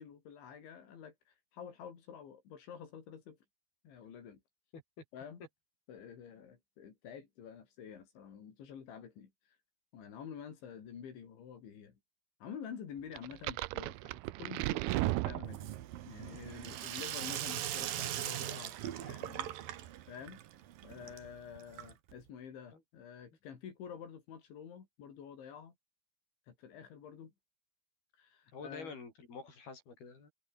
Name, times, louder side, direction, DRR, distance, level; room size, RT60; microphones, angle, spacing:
voice 1, 0.0-3.4 3.8-4.4 5.1-5.4 5.9-9.6 9.9-12.0 12.4-15.7 16.1-19.8 20.1-20.4 20.8-25.8 26.5-27.3 28.1-29.0, left 7 dB, 85° left, 6.3 m, -49 dB
sound 1, 13.2-16.0, right 19 dB, 85° right, 2.3 m, -35 dB
Sink (filling or washing), 15.4-22.2, right 12 dB, 65° right, 2.7 m, -41 dB
voice 2, 28.5-30.3, left 4 dB, 55° left, 9.6 m, -48 dB
omnidirectional pair, 5.2 m